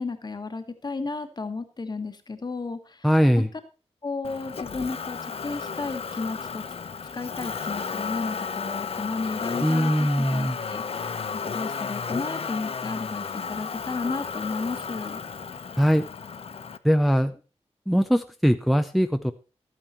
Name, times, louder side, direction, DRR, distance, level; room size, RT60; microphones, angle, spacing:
voice 1, 0.0-2.8 4.0-5.2 5.4-6.6 7.1-10.8 11.5-15.2, left 3 dB, 40° left, 8 dB, 1.4 m, -33 dB
voice 2, 3.0-3.5 9.6-10.6 15.8-16.0 16.8-17.4 17.9-19.3, equal, ahead, 8 dB, 0.5 m, -21 dB
Motor vehicle (road), 4.2-16.8, left 6 dB, 55° left, 0.7 m, -33 dB
12.5 x 8.9 x 4.3 m, 0.33 s
wide cardioid pair, 110°, 11 cm